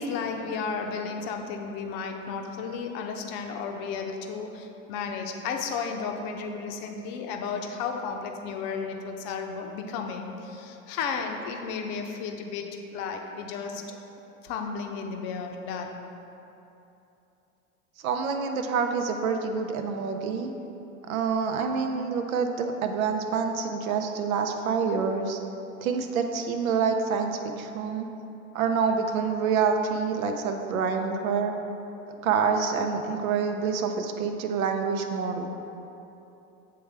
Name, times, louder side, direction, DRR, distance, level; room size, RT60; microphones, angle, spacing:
voice 1, 0.0-12.7 12.9-14.0 14.4-15.9, left 5 dB, 55° left, 3 dB, 0.7 m, -33 dB
voice 2, 18.0-20.5 21.1-25.4 25.8-28.1 28.5-31.5 32.2-35.5, right 5 dB, 80° right, 5 dB, 0.6 m, -27 dB
8.4 x 3.4 x 3.3 m, 2.9 s
hypercardioid pair, 85°, 41 cm